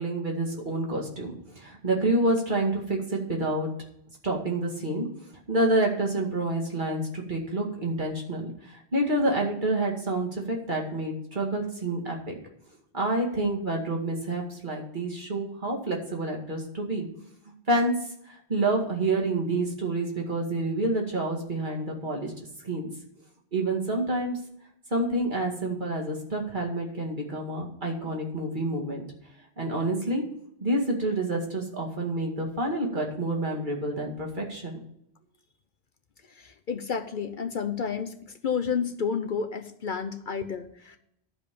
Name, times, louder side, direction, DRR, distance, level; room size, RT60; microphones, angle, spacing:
voice 1, 0.0-3.7 4.2-12.3 12.9-17.1 17.7-17.9 18.3-22.3 22.6-22.9 23.5-24.4 24.9-29.0 29.6-30.2 30.6-34.8, right 2 dB, 50° right, -1 dB, 2.2 m, -28 dB
voice 2, 36.3-38.1 38.4-41.0, left 6 dB, 55° left, 7 dB, 0.8 m, -30 dB
12.0 x 5.3 x 6.8 m, 0.76 s
omnidirectional pair, 1.1 m